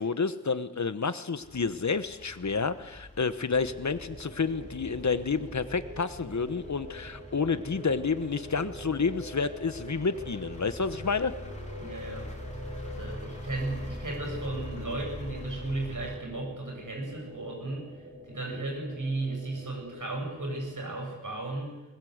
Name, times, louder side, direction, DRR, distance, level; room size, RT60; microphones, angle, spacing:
voice 1, 0.0-11.3, left 5 dB, 60° left, 12 dB, 1.2 m, -29 dB
sound 1, 1.4-16.2, left 1 dB, 20° left, 4.2 m, -44 dB
sound 2, 3.5-20.7, equal, 35° right, 6.8 m, -44 dB
voice 2, 11.8-12.3 12.7-17.9 18.3-21.7, right 2 dB, 75° right, 1 dB, 7.1 m, -35 dB
20.5 x 20.0 x 8.1 m, 1.1 s
wide cardioid pair, 70°, 32 cm